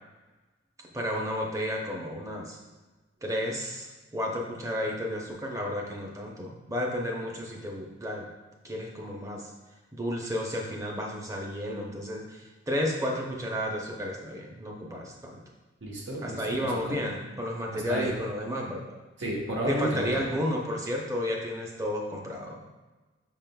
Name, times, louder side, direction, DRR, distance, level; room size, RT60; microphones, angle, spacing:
voice 1, 0.9-2.6 3.2-3.9 4.1-8.3 8.6-9.5 9.9-15.4 16.2-19.0 19.7-22.6, equal, 15° right, -1 dB, 0.6 m, -32 dB
voice 2, 15.8-17.0 17.7-18.1 19.2-20.2, right 1 dB, 85° right, -3 dB, 1.1 m, -32 dB
6.2 x 3.7 x 2.2 m, 1.2 s
head